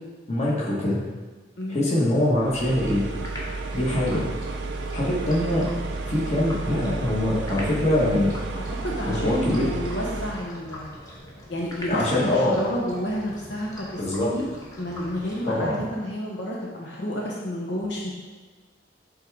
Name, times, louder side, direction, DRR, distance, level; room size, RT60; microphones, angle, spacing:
voice 1, 0.3-1.0 1.7-3.0 3.7-4.2 4.9-5.6 6.1-8.3 9.0-9.7 11.9-12.6 14.0-14.3 15.4-15.8, left 1 dB, 35° left, -5 dB, 1.4 m, -23 dB
sound 1, 2.4-10.5, right 3 dB, 75° right, 0.6 m, -32 dB
sound 2, 3.2-15.9, equal, 20° left, 1.1 m, -42 dB
voice 2, 8.8-10.9 11.5-14.4 14.8-18.1, equal, 70° left, -3 dB, 0.9 m, -30 dB
8.0 x 3.6 x 3.5 m, 1.4 s
head